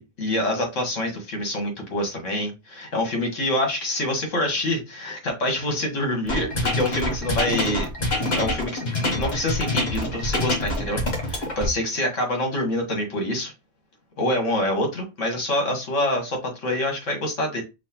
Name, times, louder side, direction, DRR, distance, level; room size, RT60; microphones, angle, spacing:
voice 1, 0.0-7.9 8.2-13.5 14.2-17.6, left 1 dB, 60° left, 2 dB, 1.8 m, -26 dB
sound 1, 6.3-11.7, left 1 dB, 35° left, 1.1 m, -26 dB
6.0 x 2.6 x 2.9 m, 0.25 s
omnidirectional pair, 1.4 m